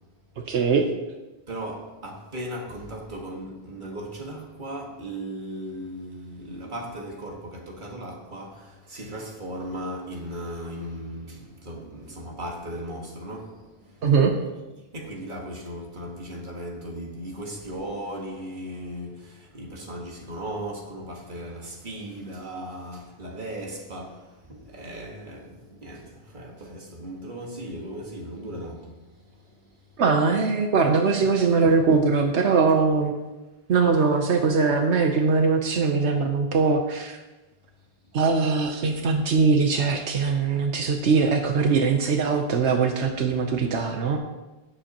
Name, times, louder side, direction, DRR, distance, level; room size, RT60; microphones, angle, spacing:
voice 1, 0.4-0.9 14.0-14.3 30.0-33.2 33.7-37.2 38.1-44.2, right 4 dB, 85° right, 1.1 m, -21 dB
voice 2, 1.5-14.1 14.9-29.9 31.6-31.8, right 1 dB, 45° right, 1.8 m, -37 dB
16.5 x 7.8 x 3.0 m
omnidirectional pair, 1.1 m